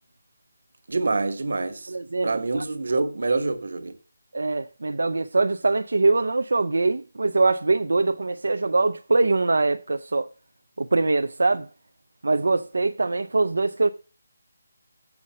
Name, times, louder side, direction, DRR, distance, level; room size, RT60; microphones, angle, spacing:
voice 1, 0.9-1.9 2.2-3.9, right 3 dB, 55° right, 1.2 m, -26 dB
voice 2, 1.9-2.6 4.3-10.3 10.8-11.7 12.2-13.9, right 3 dB, 75° right, 0.5 m, -23 dB
7.1 x 6.5 x 5.4 m
hypercardioid pair, 180°, 0 cm